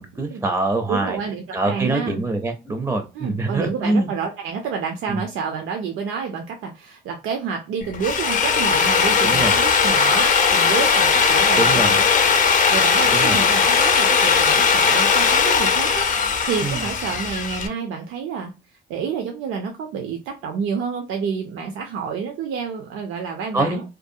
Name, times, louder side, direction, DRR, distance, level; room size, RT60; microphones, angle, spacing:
voice 1, 0.0-1.2 1.5-4.1 5.1-5.2 9.2-9.5 11.6-11.9 13.1-13.4 16.6-16.8 23.5-23.8, right 2 dB, 10° right, 5 dB, 0.4 m, -24 dB
voice 2, 0.9-2.2 3.1-18.5 18.9-23.8, right 6 dB, 85° right, 3 dB, 0.5 m, -29 dB
Drill, 7.8-17.7, left 5 dB, 40° left, 0.5 m, -18 dB
2.6 x 2.2 x 2.6 m, 0.30 s
cardioid pair, 90°, 20 cm